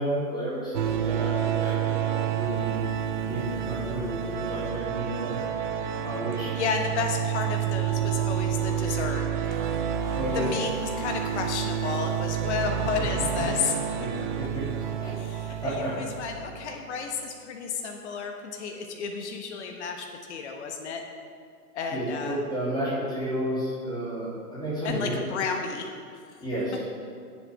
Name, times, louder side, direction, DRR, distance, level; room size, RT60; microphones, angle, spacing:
voice 1, 0.0-2.7 3.2-5.3 6.0-6.5 10.1-10.5 13.2-13.5 14.0-15.1 15.6-15.9 21.9-25.2 26.4-26.8, right 1 dB, 10° left, -8 dB, 3.3 m, -32 dB
sound 1, 0.7-16.7, right 9 dB, 30° right, 0.6 m, -29 dB
voice 2, 6.5-9.7 10.0-13.8 15.2-21.0 21.7-22.4 24.8-25.9, left 5 dB, 45° left, 3 dB, 1.3 m, -32 dB
19.0 x 7.3 x 3.6 m, 2.2 s
hypercardioid pair, 135°, 47 cm